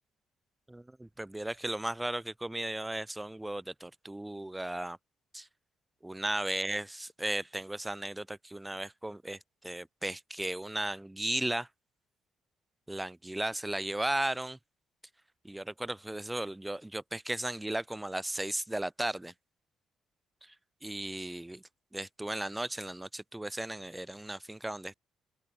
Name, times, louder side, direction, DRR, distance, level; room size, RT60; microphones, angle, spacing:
voice 1, 0.7-5.0 5.3-5.5 6.0-9.4 9.6-11.7 12.9-14.6 15.4-19.3 20.4-20.5 20.8-21.6 21.9-24.9, right 1 dB, 10° right, 0.3 m, -35 dB
open air
cardioid pair, 90°, 0 cm